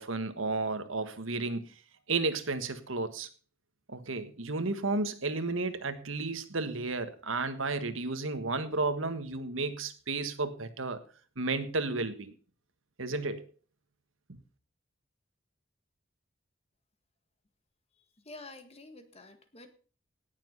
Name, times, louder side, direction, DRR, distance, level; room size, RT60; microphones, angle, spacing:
voice 1, 0.0-1.7 2.1-3.3 3.9-11.0 11.4-12.3 13.0-13.5 14.3-14.4, right 3 dB, 85° right, 10 dB, 1.6 m, -32 dB
voice 2, 18.2-19.7, left 2 dB, 30° left, 8 dB, 1.8 m, -49 dB
18.0 x 7.4 x 5.5 m, 0.38 s
head